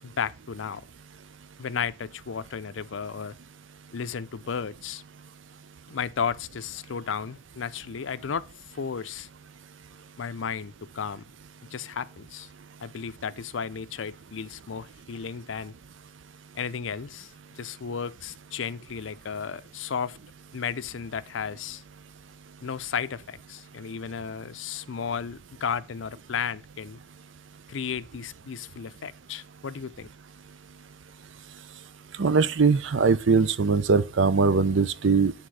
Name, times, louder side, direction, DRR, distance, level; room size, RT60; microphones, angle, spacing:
voice 1, 0.0-0.8 1.6-3.4 3.9-5.0 5.9-9.3 10.2-11.3 11.7-12.5 12.8-15.7 16.5-20.2 20.5-21.8 22.6-27.0 27.7-30.1, left 6 dB, 80° left, 0.5 m, -34 dB
voice 2, 32.2-35.3, right 4 dB, 75° right, 0.6 m, -21 dB
9.7 x 3.7 x 6.2 m
head